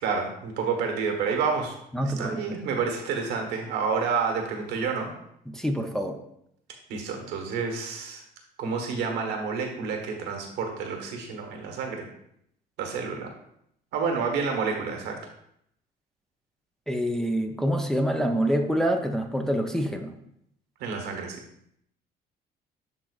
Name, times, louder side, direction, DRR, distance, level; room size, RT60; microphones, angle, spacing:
voice 1, 0.0-1.7 2.0-5.1 6.9-8.2 8.6-12.1 12.8-13.3 13.9-15.2 20.8-21.4, right 5 dB, 90° right, 3 dB, 1.2 m, -29 dB
voice 2, 1.9-2.4 5.5-6.2 16.9-20.1, equal, 5° left, 3 dB, 0.6 m, -26 dB
11.0 x 3.8 x 2.4 m, 0.74 s
cardioid pair, 110°, 17 cm